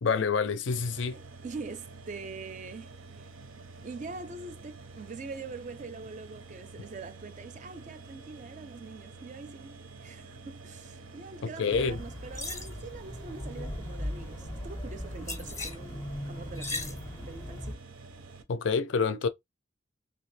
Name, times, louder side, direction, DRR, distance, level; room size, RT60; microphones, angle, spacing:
voice 1, 0.0-1.2 11.4-12.0 18.5-19.3, left 5 dB, 65° left, 0.4 m, -27 dB
sound 1, 0.7-18.4, right 3 dB, 90° right, 0.6 m, -49 dB
voice 2, 1.1-3.2 3.8-17.8, right 4 dB, 35° right, 0.4 m, -44 dB
sound 2, 11.7-17.8, left 1 dB, 15° left, 0.5 m, -38 dB
2.8 x 2.6 x 3.2 m
head